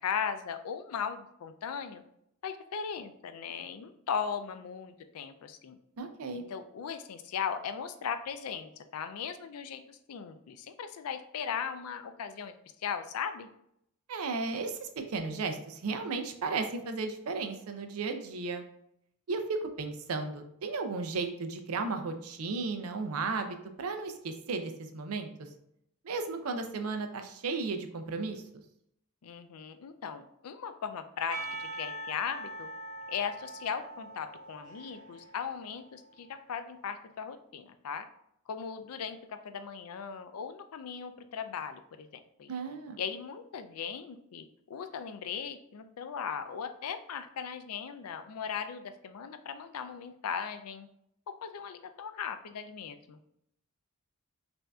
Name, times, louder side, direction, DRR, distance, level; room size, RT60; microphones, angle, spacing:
voice 1, 0.0-2.0 2.4-5.8 6.3-12.5 12.8-13.5 29.2-32.7 33.1-38.1 38.5-42.5 43.0-50.9 51.4-53.2, left 7 dB, 75° left, 9 dB, 0.4 m, -38 dB
voice 2, 6.0-6.4 14.1-18.6 19.3-25.5 26.0-28.4 42.5-43.0, right 4 dB, 70° right, 6 dB, 0.5 m, -34 dB
Percussion / Church bell, 31.3-36.3, right 1 dB, 20° right, 1.3 m, -43 dB
5.4 x 2.6 x 2.3 m, 0.75 s
head